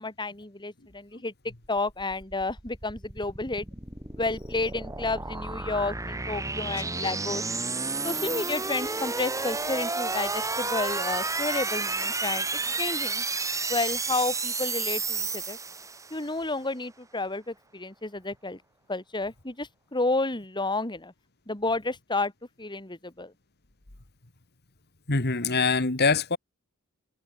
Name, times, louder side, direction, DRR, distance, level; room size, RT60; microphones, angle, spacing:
voice 1, 0.0-3.7 4.2-7.4 8.0-13.2 13.7-15.6 16.1-18.6 18.9-21.1 21.5-22.3 22.6-23.3, left 2 dB, 20° left, 2.8 m, -31 dB
sound 1, 1.7-16.3, right 3 dB, 15° right, 1.8 m, -31 dB
voice 2, 6.7-7.1 25.1-26.4, left 4 dB, 50° left, 2.2 m, -25 dB
head